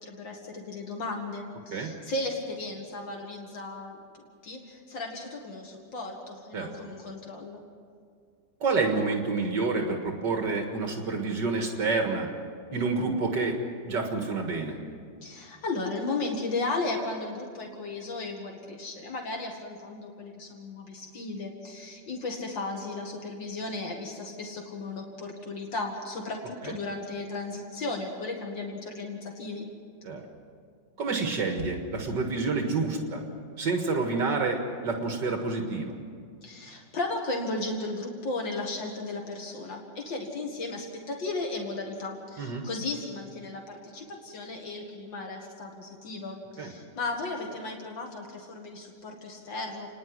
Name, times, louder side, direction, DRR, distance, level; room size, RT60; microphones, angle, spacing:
voice 1, 0.0-7.6 15.2-29.7 36.4-49.9, left 2 dB, 85° left, 1 dB, 2.7 m, -35 dB
voice 2, 8.6-12.3 12.7-13.6 13.8-14.8 26.6-26.8 30.0-30.2 31.0-33.2 33.6-36.0 42.4-42.7 46.6-46.7, right 3 dB, 70° right, 3 dB, 2.4 m, -28 dB
29.5 x 10.5 x 9.7 m, 2.1 s
omnidirectional pair, 2.0 m